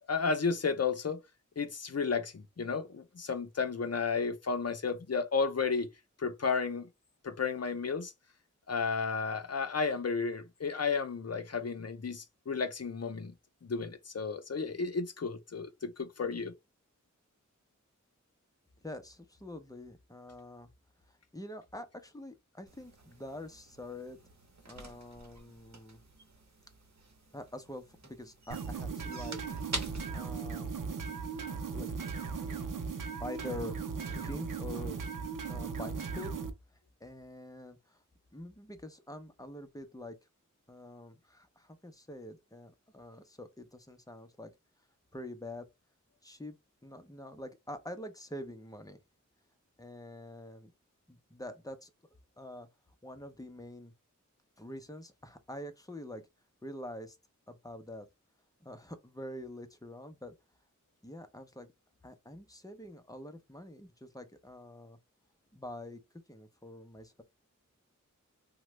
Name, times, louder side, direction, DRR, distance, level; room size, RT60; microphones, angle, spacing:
voice 1, 0.1-1.2 1.6-5.9 6.2-6.9 7.2-8.1 8.7-13.3 13.6-16.5, left 5 dB, 55° left, 0.6 m, -33 dB
voice 2, 18.8-20.7 21.0-24.2 24.7-26.0 27.3-29.6 30.1-30.7 31.7-31.9 33.2-35.0 35.5-36.3 37.0-38.0 38.3-40.2 40.7-44.5 45.1-45.7 46.2-46.5 46.8-49.0 49.8-50.7 51.1-51.9 52.4-52.7 53.0-53.9 54.6-56.2 56.6-57.2 57.5-58.1 58.6-60.3 61.0-61.7 62.0-65.0 65.5-66.0 66.3-67.2, left 1 dB, 10° left, 0.6 m, -45 dB
sound 1, 22.7-31.6, right 2 dB, 60° right, 0.9 m, -47 dB
sound 2, 28.5-36.5, right 5 dB, 85° right, 0.6 m, -37 dB
3.0 x 2.2 x 3.1 m
wide cardioid pair, 50°, 31 cm